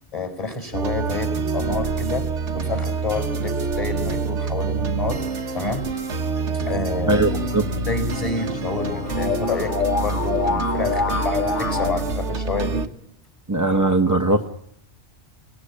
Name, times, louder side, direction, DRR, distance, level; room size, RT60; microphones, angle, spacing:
voice 1, 0.1-5.2 5.5-5.9 6.5-7.2 7.9-12.9, left 3 dB, 30° left, 7 dB, 4.6 m, -29 dB
sound 1, 0.7-12.9, right 4 dB, 85° right, 1.7 m, -26 dB
sound 2, 6.6-11.9, left 4 dB, 85° left, 2.1 m, -27 dB
voice 2, 7.1-7.7 13.5-14.5, right 2 dB, 15° right, 3 dB, 1.1 m, -20 dB
27.0 x 17.5 x 9.9 m, 0.78 s
omnidirectional pair, 1.2 m